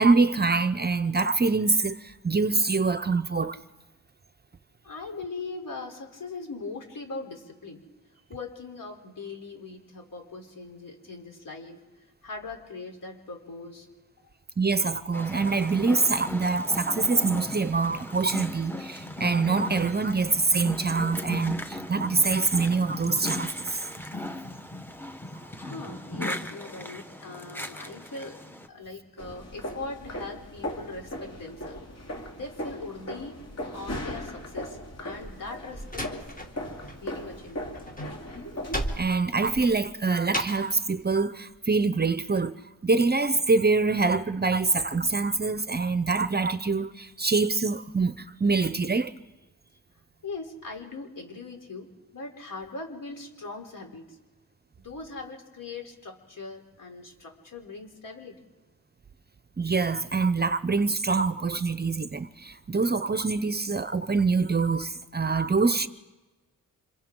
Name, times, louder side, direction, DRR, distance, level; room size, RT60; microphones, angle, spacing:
voice 1, 0.0-3.6 14.6-23.8 38.9-42.5 42.8-49.1 59.6-65.9, right 4 dB, 30° right, 0.6 m, -25 dB
voice 2, 4.8-7.8 8.1-11.8 12.2-13.9 25.6-28.4 28.7-31.8 32.3-33.4 33.7-36.2 37.0-37.9 50.2-54.2 54.8-58.4, left 3 dB, 70° left, 3.6 m, -40 dB
sound 1, 15.1-28.7, left 1 dB, 5° left, 1.0 m, -37 dB
sound 2, 29.2-38.8, left 1 dB, 50° left, 2.7 m, -38 dB
Slam, 35.2-37.0 37.3-40.8, equal, 25° left, 1.9 m, -35 dB
29.5 x 26.5 x 3.8 m
wide cardioid pair, 125°, 34 cm